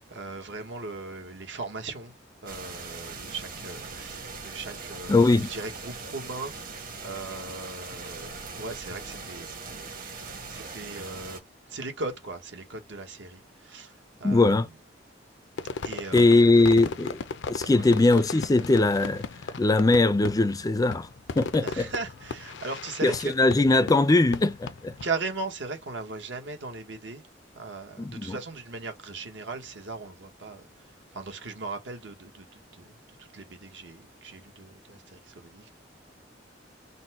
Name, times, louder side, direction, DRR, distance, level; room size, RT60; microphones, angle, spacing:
voice 1, 0.1-2.1 2.4-14.6 15.8-16.5 17.6-17.8 21.6-23.3 25.0-27.2 27.5-35.7, right 3 dB, 75° right, 1.3 m, -38 dB
sound 1, 2.5-11.4, right 4 dB, 50° right, 1.4 m, -40 dB
voice 2, 5.1-5.5 14.2-14.7 16.1-17.2 17.5-19.2 19.6-21.1 21.4-21.9 23.0-24.9 28.0-28.4, left 2 dB, 20° left, 0.4 m, -21 dB
Fireworks, 15.6-25.1, left 4 dB, 70° left, 0.5 m, -37 dB
4.0 x 2.2 x 4.3 m
head